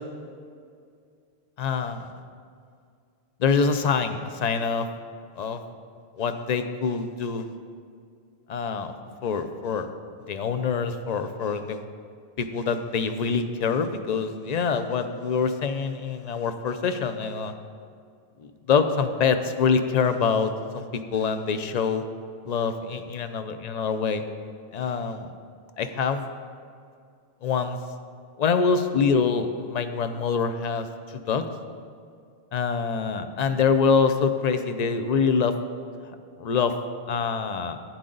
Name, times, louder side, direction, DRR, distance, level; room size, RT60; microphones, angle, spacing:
voice 1, 1.6-2.1 3.4-4.9 5.4-5.6 6.2-7.5 8.5-8.9 9.2-9.9 10.3-11.8 12.4-17.5 18.7-22.0 22.4-24.2 24.7-25.3 25.8-26.2 27.4-27.8 28.4-30.9 31.3-31.4 32.5-35.5 36.4-36.7 37.1-37.8, left 5 dB, 45° left, 9 dB, 0.6 m, -25 dB
11.5 x 9.5 x 3.9 m, 2.3 s
omnidirectional pair, 1.1 m